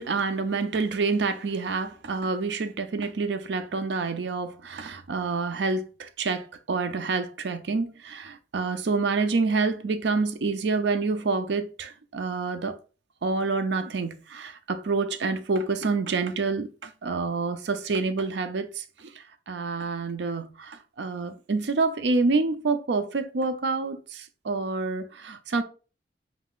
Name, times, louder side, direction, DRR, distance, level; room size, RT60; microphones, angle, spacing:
voice 1, 0.0-12.8 13.2-19.1 19.5-25.6, right 4 dB, 85° right, 0.5 m, -27 dB
4.7 x 3.7 x 2.4 m
head